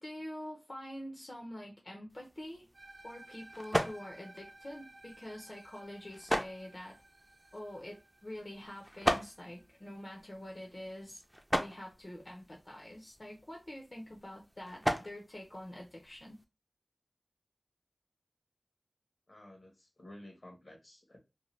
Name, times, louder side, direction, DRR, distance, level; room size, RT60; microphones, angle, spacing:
voice 1, 0.0-2.7 3.0-7.0 7.5-11.2 11.5-16.4, left 1 dB, 45° left, 0.6 m, -46 dB
sound 1, 2.1-16.4, equal, ahead, 0.4 m, -39 dB
sound 2, 2.7-11.2, right 2 dB, 75° right, 0.7 m, -57 dB
voice 2, 19.3-21.2, left 1 dB, 70° left, 1.1 m, -53 dB
2.7 x 2.1 x 3.1 m
wide cardioid pair, 40°, 0 cm